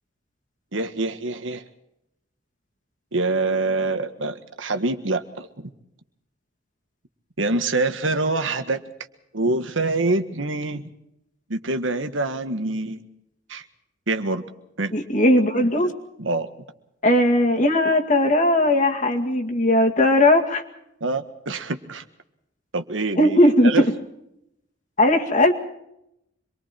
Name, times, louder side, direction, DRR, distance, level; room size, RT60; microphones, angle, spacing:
voice 1, 0.7-1.6 3.1-5.5 7.4-8.8 9.3-10.9 11.5-13.0 13.5-13.6 14.1-14.4 14.8-14.9 16.2-16.5 21.0-22.0 22.7-23.4 23.6-23.8, right 2 dB, 85° right, 8 dB, 1.7 m, -25 dB
voice 2, 14.9-15.9 17.0-20.6 23.2-23.9 25.0-25.5, left 1 dB, 40° left, 3 dB, 2.3 m, -18 dB
26.5 x 23.0 x 4.5 m, 0.81 s
head